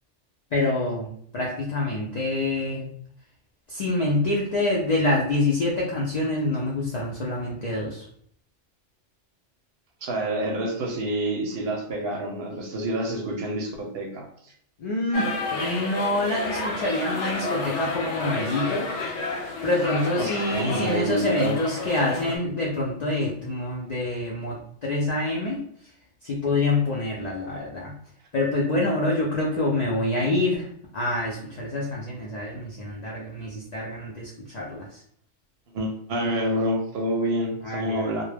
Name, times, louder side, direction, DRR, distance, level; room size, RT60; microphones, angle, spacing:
voice 1, 0.5-2.9 3.7-8.1 14.8-18.9 19.6-25.6 26.2-28.0 28.3-35.0 37.6-38.2, left 2 dB, 65° left, -4 dB, 0.4 m, -26 dB
voice 2, 10.0-14.5 20.2-21.6 35.7-38.2, right 1 dB, 65° right, 1 dB, 0.7 m, -28 dB
sound 1, 15.1-22.4, left 3 dB, 90° left, 0.9 m, -31 dB
2.1 x 2.0 x 3.2 m, 0.65 s
omnidirectional pair, 1.2 m